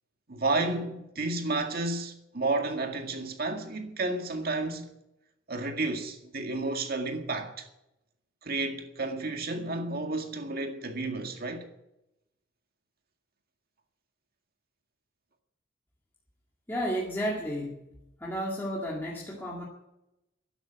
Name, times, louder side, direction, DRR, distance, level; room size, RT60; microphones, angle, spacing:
voice 1, 0.3-4.9 5.5-7.7 8.4-11.7, right 2 dB, 50° right, 2.0 m, -31 dB
voice 2, 16.7-17.9 18.2-19.6, equal, 10° left, 2.1 m, -32 dB
11.5 x 11.5 x 9.1 m
head